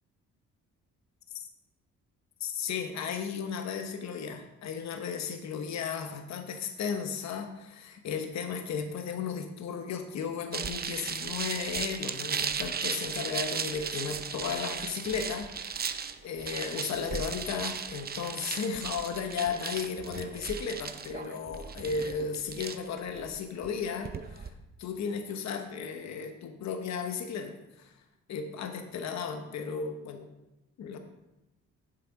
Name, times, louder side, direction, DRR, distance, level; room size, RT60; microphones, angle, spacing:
voice 1, 2.4-15.8 16.2-24.5 24.8-27.9 28.3-30.3 30.8-31.0, left 6 dB, 65° left, 6 dB, 1.0 m, -35 dB
sound 1, 10.5-24.5, right 6 dB, 30° right, 0.6 m, -36 dB
7.7 x 6.6 x 4.6 m, 0.99 s
cardioid pair, 90°, 30 cm